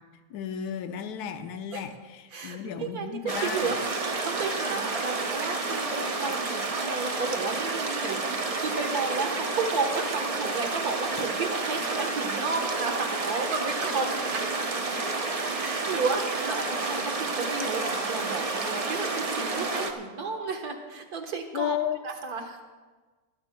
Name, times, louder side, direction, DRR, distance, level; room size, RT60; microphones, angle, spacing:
voice 1, 0.3-3.7 21.5-22.0, left 9 dB, 70° left, 8 dB, 1.2 m, -33 dB
voice 2, 2.3-14.6 15.5-21.8 22.0-22.6, right 4 dB, 65° right, 4 dB, 1.7 m, -33 dB
sound 1, 3.3-19.9, right 3 dB, 40° right, 0.5 m, -30 dB
21.0 x 14.0 x 2.2 m, 1.4 s
omnidirectional pair, 1.8 m